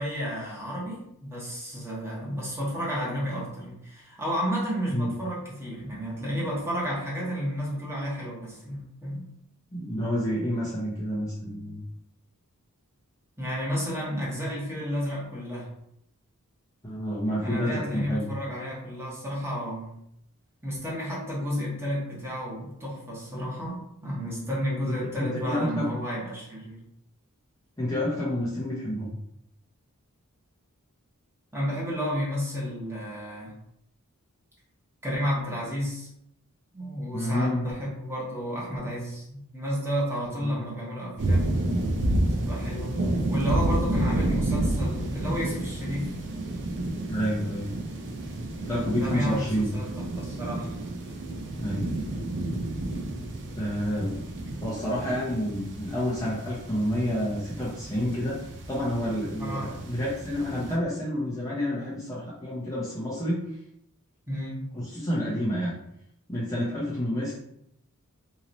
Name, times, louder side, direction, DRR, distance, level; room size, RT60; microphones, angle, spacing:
voice 1, 0.0-9.2 13.4-15.7 17.4-20.0 20.6-26.8 31.5-33.5 35.0-36.1 36.7-41.5 42.4-46.1 48.9-49.9 50.2-50.8 59.4-59.7 64.3-64.7, equal, 10° right, -6 dB, 1.3 m, -32 dB
voice 2, 9.7-11.8 16.8-18.3 24.9-25.8 27.8-29.2 37.1-37.7 40.4-40.6 47.1-47.7 48.7-49.7 51.6-51.9 53.6-54.2 54.6-58.4 58.7-63.4 64.7-65.8 66.3-67.4, equal, 15° left, -7 dB, 0.8 m, -29 dB
sound 1, 41.2-60.8, right 1 dB, 55° right, 0.6 m, -30 dB
3.1 x 2.8 x 4.0 m, 0.76 s
head